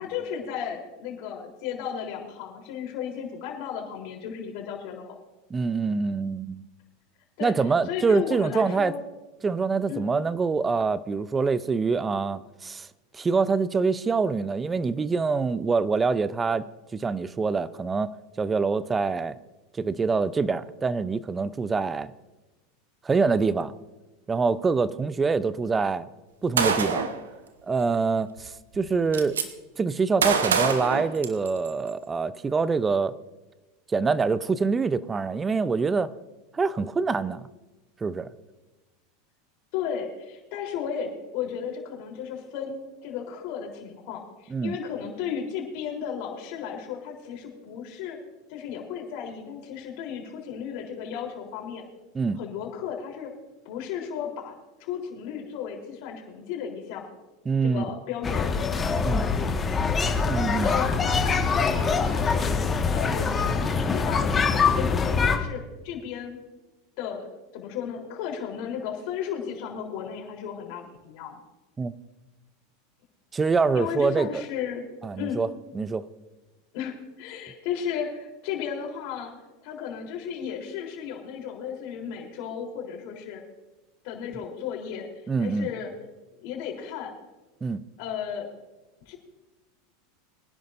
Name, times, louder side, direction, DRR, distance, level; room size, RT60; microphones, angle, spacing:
voice 1, 0.0-5.2 7.4-7.5 7.8-9.0 9.9-10.1 39.7-48.2 48.5-51.8 52.3-53.3 53.7-54.5 54.8-57.1 57.6-58.5 60.6-62.5 62.9-66.4 67.0-67.3 67.5-71.4 73.7-74.8 75.2-75.4 76.7-79.3 79.6-83.4 84.0-85.1 85.4-85.9 86.4-87.1 88.0-88.5 89.1-89.2, left 8 dB, 60° left, 0 dB, 3.7 m, -34 dB
voice 2, 5.5-6.6 7.4-8.9 9.4-12.9 13.1-16.6 16.9-19.4 19.8-22.1 23.0-23.7 24.3-26.1 26.4-27.1 27.7-29.4 29.8-33.1 33.9-36.1 36.5-37.5 38.0-38.3 44.5-44.8 52.1-52.4 57.5-57.8 59.0-59.6 60.3-60.7 71.8-71.9 73.3-74.4 75.0-75.5 75.7-76.1 85.3-85.7 87.6-87.8, right 4 dB, 20° right, 16 dB, 0.6 m, -25 dB
Gunshot gunfire, 26.6-27.2 28.4-28.5 28.7-29.4 30.2-31.7, right 5 dB, 90° right, 1.1 m, -25 dB
sound 1, 58.2-65.4, left 5 dB, 25° left, 1.6 m, -24 dB
23.5 x 10.5 x 2.6 m, 1.1 s
hypercardioid pair, 95°, 0 cm